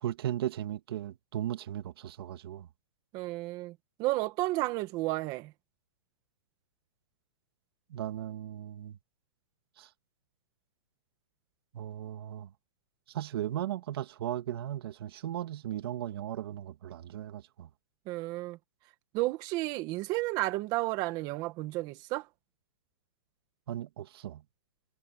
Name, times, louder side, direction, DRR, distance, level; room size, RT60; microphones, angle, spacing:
voice 1, 0.0-2.7 7.9-9.0 9.8-9.9 11.7-12.5 13.1-17.7 23.7-24.4, right 12 dB, 55° right, 2.3 m, -36 dB
voice 2, 3.1-5.5 18.0-18.6 19.1-22.3, right 19 dB, 25° right, 1.5 m, -32 dB
hypercardioid pair, 165°, 15 cm